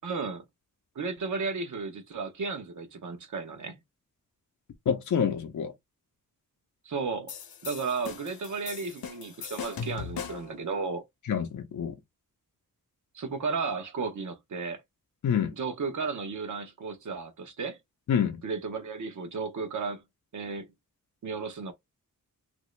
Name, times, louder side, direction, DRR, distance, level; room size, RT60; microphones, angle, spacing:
voice 1, 0.0-0.4 1.0-3.8 6.8-7.3 7.6-11.1 13.1-14.8 15.6-17.8 18.4-20.0 20.3-20.7 21.2-21.7, right 4 dB, 60° right, 0.8 m, -34 dB
voice 2, 4.9-5.7 11.2-12.0 15.2-15.5 18.1-18.4, left 8 dB, 55° left, 0.6 m, -27 dB
sound 1, 7.3-10.6, left 7 dB, 90° left, 0.7 m, -39 dB
2.9 x 2.6 x 3.1 m
wide cardioid pair, 160°, 35 cm